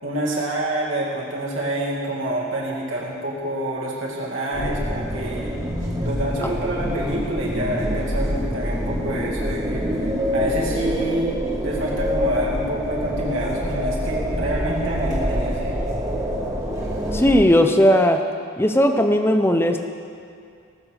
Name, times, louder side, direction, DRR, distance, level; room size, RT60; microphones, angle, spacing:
voice 1, 0.0-5.6 6.0-9.9 10.3-15.8, right 1 dB, 70° right, -4 dB, 2.5 m, -27 dB
sound 1, 4.5-17.4, equal, 15° right, 1.7 m, -26 dB
voice 2, 17.1-18.2 18.6-19.8, equal, 10° left, 6 dB, 0.7 m, -17 dB
18.5 x 7.0 x 6.5 m, 2.4 s
head